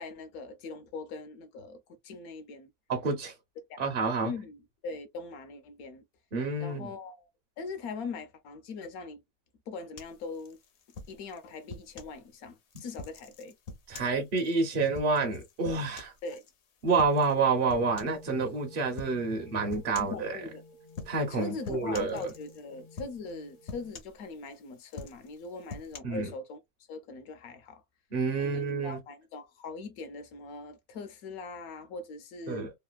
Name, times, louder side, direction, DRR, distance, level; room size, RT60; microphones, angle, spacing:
voice 1, 0.0-2.7 3.7-3.8 4.2-6.0 6.6-7.3 7.6-9.2 9.7-10.6 11.1-13.6 13.9-14.1 16.2-16.4 20.0-20.6 21.3-26.6 26.9-27.8 28.4-32.7, left 3 dB, 75° left, 1.1 m, -41 dB
voice 2, 2.9-3.3 3.8-4.3 6.3-6.9 13.9-16.1 16.8-20.4 21.1-22.2 26.0-26.3 28.1-29.0 32.5-32.7, right 4 dB, 50° right, 0.8 m, -28 dB
sound 1, 10.0-12.2 12.7-16.5 17.0-17.4 17.7-18.3 19.0-19.2 19.7-20.2 20.9-21.4 21.6-22.6 23.0-23.4 23.7-24.5 24.9-26.0, left 4 dB, 55° left, 0.8 m, -45 dB
sound 2, 17.9-23.9, left 1 dB, 90° left, 1.3 m, -53 dB
3.2 x 2.4 x 2.3 m
omnidirectional pair, 1.6 m